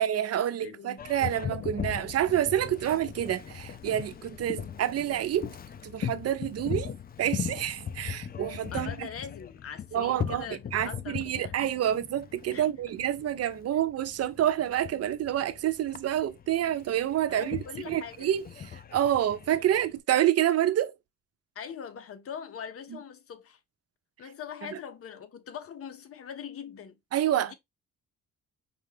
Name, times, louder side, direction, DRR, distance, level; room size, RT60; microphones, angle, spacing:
voice 1, 0.0-5.5 5.8-6.9 7.2-9.1 9.9-10.4 10.7-20.9 27.1-27.5, right 11 dB, 55° right, 0.6 m, -28 dB
voice 2, 0.6-1.1 8.7-11.5 12.5-12.7 17.3-18.3 21.5-23.6 24.2-27.0 27.4-27.5, left 7 dB, 50° left, 0.9 m, -42 dB
Boat Water vehicle, 1.0-20.0, left 8 dB, 30° left, 0.4 m, -39 dB
5.2 x 2.3 x 3.3 m
cardioid pair, 90°, 30 cm